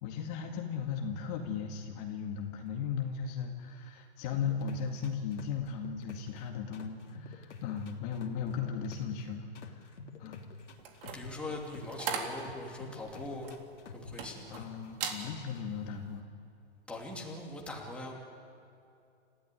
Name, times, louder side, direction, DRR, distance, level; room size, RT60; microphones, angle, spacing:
voice 1, 0.0-9.9 10.2-10.4 14.5-16.3, left 6 dB, 35° left, 2 dB, 2.1 m, -37 dB
sound 1, 4.4-6.4 6.7-9.2 9.5-12.0 12.4-14.9 15.2-15.6, left 5 dB, 90° left, 3.3 m, -48 dB
sound 2, 10.8-14.6 14.9-15.3 15.7-16.0, right 7 dB, 55° right, 3.6 m, -39 dB
voice 2, 11.1-13.5 13.9-14.7 16.9-18.1, left 2 dB, 5° left, -2 dB, 2.8 m, -41 dB
29.0 x 15.0 x 9.9 m, 2.5 s
hypercardioid pair, 150°, 34 cm